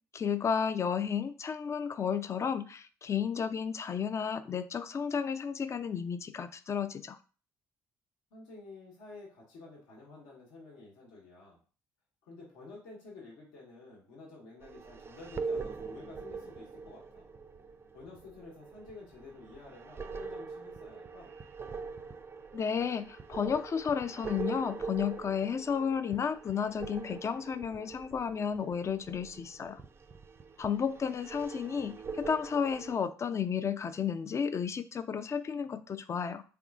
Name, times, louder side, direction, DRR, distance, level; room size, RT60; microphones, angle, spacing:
voice 1, 0.1-7.2 22.5-29.8 30.6-36.4, left 7 dB, 35° left, 11 dB, 0.4 m, -32 dB
voice 2, 8.3-11.6 12.2-17.3 17.9-21.3, left 3 dB, 75° left, -3 dB, 1.2 m, -51 dB
sound 1, 14.6-33.0, right 4 dB, 30° right, 0.4 m, -43 dB
3.5 x 3.5 x 2.4 m, 0.38 s
hypercardioid pair, 50°, 8 cm